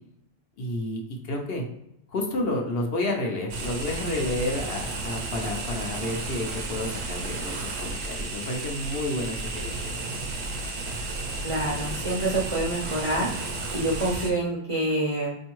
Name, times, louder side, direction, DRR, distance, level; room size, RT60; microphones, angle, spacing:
voice 1, 0.6-1.7 2.1-9.9, left 1 dB, 65° left, 0 dB, 0.9 m, -30 dB
sound 1, 3.5-14.3, right 2 dB, 75° right, 0.9 m, -33 dB
voice 2, 11.4-15.4, right 1 dB, 40° right, -4 dB, 0.5 m, -27 dB
4.3 x 2.7 x 3.0 m, 0.82 s
omnidirectional pair, 1.1 m